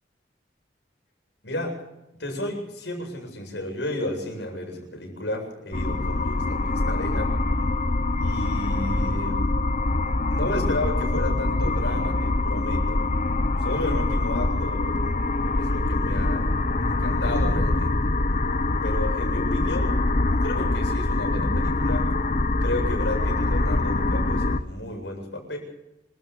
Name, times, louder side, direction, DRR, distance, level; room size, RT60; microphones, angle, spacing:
voice 1, 1.4-1.8 2.2-7.3 8.1-9.4 10.3-13.0 13.6-15.1 15.5-16.5 16.8-18.1 18.8-20.0 20.4-22.1 22.6-25.6, left 1 dB, 80° left, 1 dB, 7.9 m, -32 dB
sound 1, 5.7-24.6, left 2 dB, 45° left, 1.0 m, -24 dB
27.0 x 13.5 x 7.2 m, 0.89 s
head